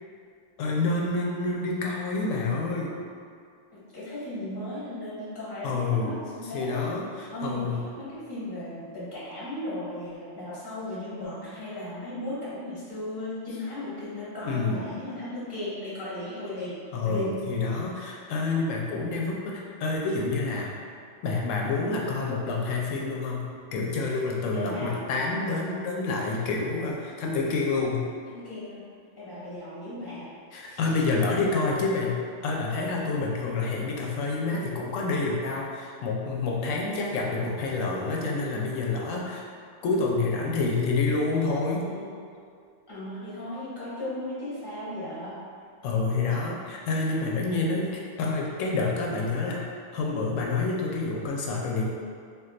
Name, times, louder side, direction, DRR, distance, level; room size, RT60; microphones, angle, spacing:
voice 1, 0.6-2.9 5.6-6.1 6.5-7.8 14.5-14.8 16.9-20.8 21.2-28.0 30.5-39.5 39.8-41.9 45.8-51.9, left 3 dB, 85° left, -2 dB, 0.9 m, -28 dB
voice 2, 3.7-7.0 7.3-16.7 17.0-17.4 24.5-25.0 28.3-28.8 29.2-30.3 30.7-31.1 41.7-42.2 42.9-45.4, left 1 dB, 20° left, -9 dB, 0.8 m, -36 dB
2.5 x 2.3 x 3.7 m, 2.3 s
omnidirectional pair, 1.3 m